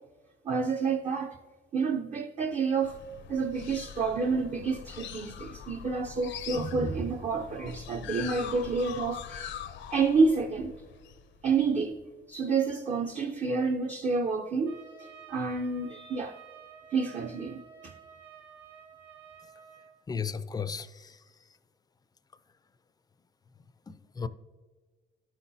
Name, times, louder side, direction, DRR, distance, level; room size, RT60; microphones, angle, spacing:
voice 1, 0.4-1.4 1.7-3.0 3.3-9.5 9.9-10.7 11.4-16.4 16.9-17.9, right 4 dB, 35° right, 0.6 m, -29 dB
sound 1, 2.8-11.9, left 9 dB, 70° left, 0.6 m, -43 dB
Trumpet, 14.6-19.9, right 7 dB, 75° right, 1.5 m, -51 dB
voice 2, 20.1-21.2 23.9-24.3, left 6 dB, 20° left, 0.4 m, -35 dB
11.5 x 5.8 x 2.7 m
cardioid pair, 90°, 20 cm